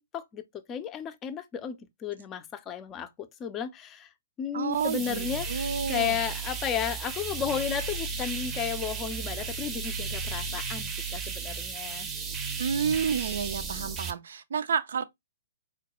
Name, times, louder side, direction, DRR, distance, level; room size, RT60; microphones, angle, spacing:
voice 1, 0.1-4.1 4.4-12.1, left 8 dB, 20° left, 0.5 m, -34 dB
voice 2, 4.5-6.2 12.6-15.0, right 7 dB, 60° right, 0.4 m, -30 dB
sound 1, 4.7-14.1, right 5 dB, 20° right, 0.7 m, -34 dB
4.3 x 2.2 x 2.9 m
figure-of-eight pair, 120°, 0 cm